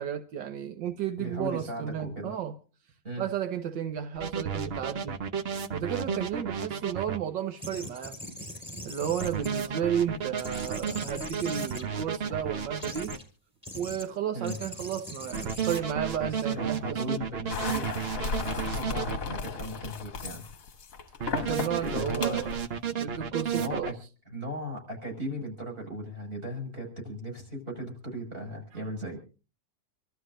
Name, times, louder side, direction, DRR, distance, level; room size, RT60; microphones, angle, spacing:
voice 1, 0.0-2.5 3.2-5.2 5.7-8.3 8.8-13.1 13.7-17.2 21.3-22.6 22.9-23.9, right 9 dB, 85° right, 1.7 m, -33 dB
voice 2, 1.2-2.3 3.0-3.2 14.3-14.6 16.2-20.4 21.8-22.4 23.3-24.0 24.3-29.2, equal, 30° right, 6.4 m, -37 dB
sound 1, 4.2-7.2 9.2-13.2 15.3-19.2 21.2-23.9, right 7 dB, 45° right, 0.8 m, -32 dB
sound 2, 7.6-10.0 10.4-12.3 12.8-13.2 13.6-14.1 14.4-16.9, left 1 dB, 5° right, 5.1 m, -42 dB
sound 3, 17.5-22.6, left 5 dB, 55° left, 1.4 m, -35 dB
28.0 x 13.0 x 2.5 m
omnidirectional pair, 1.9 m